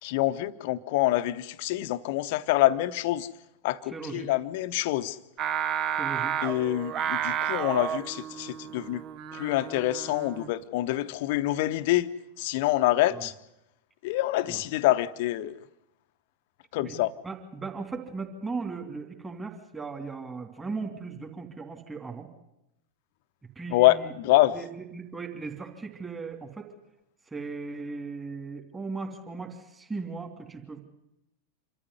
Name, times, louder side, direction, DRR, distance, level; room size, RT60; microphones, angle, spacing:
voice 1, 0.0-3.3 3.6-5.2 6.4-9.0 9.3-12.1 12.4-13.3 14.0-15.6 16.7-17.1 23.7-24.6, left 16 dB, 50° left, 13 dB, 0.9 m, -26 dB
voice 2, 3.9-4.3 5.9-6.3 14.5-14.6 16.8-17.0 17.2-22.3 23.6-24.1 24.5-24.7 24.9-26.7 27.3-30.8, right 4 dB, 15° right, 4 dB, 2.9 m, -37 dB
Singing, 5.4-10.6, right 9 dB, 30° right, 0.9 m, -32 dB
26.5 x 13.5 x 9.7 m, 0.89 s
figure-of-eight pair, 90°, 0 cm